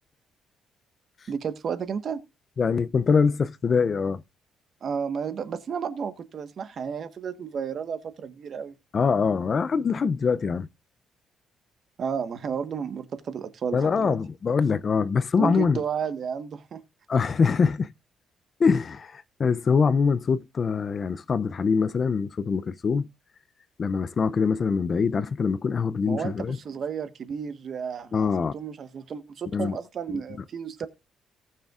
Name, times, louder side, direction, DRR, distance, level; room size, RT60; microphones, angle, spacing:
voice 1, 1.3-2.2 4.8-8.7 12.0-14.2 15.4-16.8 26.0-30.9, right 7 dB, 45° right, 1.2 m, -32 dB
voice 2, 2.6-4.2 8.9-10.7 13.7-15.8 17.1-17.9 18.6-23.1 23.8-26.6 28.1-28.5 29.5-29.8 30.1-30.2, left 5 dB, 35° left, 0.4 m, -24 dB
18.0 x 6.5 x 2.4 m
cardioid pair, 160°, 0 cm